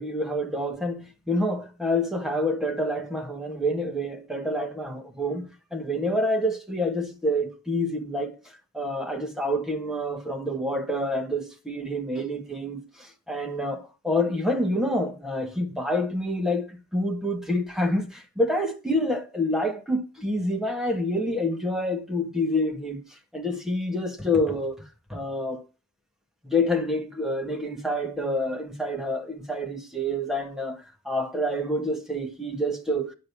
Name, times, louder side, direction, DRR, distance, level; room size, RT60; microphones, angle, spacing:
voice 1, 0.0-8.3 8.7-23.0 23.3-24.8 25.1-25.6 26.4-33.1, left 1 dB, ahead, 2.0 m, -27 dB
10.5 x 7.9 x 7.2 m
head